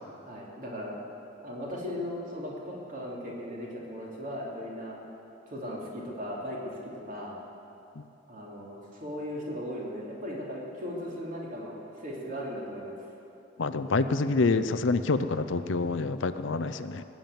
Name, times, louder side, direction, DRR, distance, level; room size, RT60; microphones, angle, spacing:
voice 1, 0.3-0.9 1.4-5.0 5.5-6.7 7.1-7.4 8.3-13.0, equal, 45° right, -3 dB, 3.1 m, -37 dB
voice 2, 13.6-17.0, left 3 dB, 70° left, 11 dB, 0.6 m, -27 dB
19.0 x 7.4 x 9.0 m, 2.8 s
head